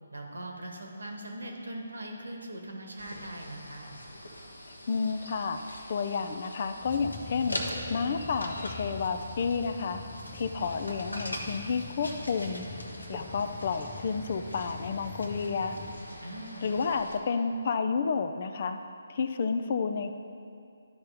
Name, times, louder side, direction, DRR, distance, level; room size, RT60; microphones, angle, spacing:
voice 1, 0.1-4.0 16.2-16.7, right 1 dB, 80° right, 1 dB, 1.5 m, -41 dB
sound 1, 3.0-17.2, left 1 dB, 90° left, 1.1 m, -43 dB
voice 2, 4.9-5.6 5.9-7.6 7.9-10.0 10.3-12.7 13.1-15.8 16.6-18.8 19.1-20.2, left 5 dB, 45° left, 8 dB, 0.5 m, -30 dB
sound 2, 6.8-15.9, left 4 dB, 10° left, 0.8 m, -44 dB
11.5 x 5.6 x 3.4 m, 2.5 s
figure-of-eight pair, 145°, 0 cm